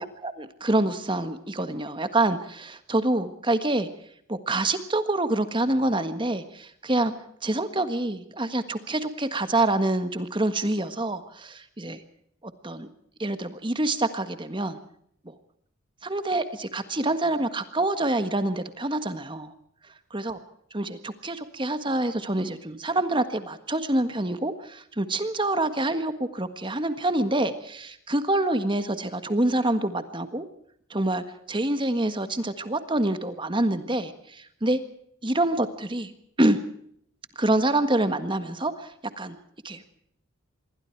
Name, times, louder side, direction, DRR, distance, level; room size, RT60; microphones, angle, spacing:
voice 1, 0.0-3.9 4.3-7.1 7.4-12.0 12.4-12.9 13.2-14.8 15.2-15.3 16.0-19.5 20.1-20.4 20.7-30.4 30.9-34.8 35.2-36.1 36.4-36.6 37.3-38.9 39.2-39.4 39.6-39.8, right 2 dB, 25° right, 10 dB, 1.6 m, -26 dB
26.5 x 22.0 x 4.7 m, 0.68 s
head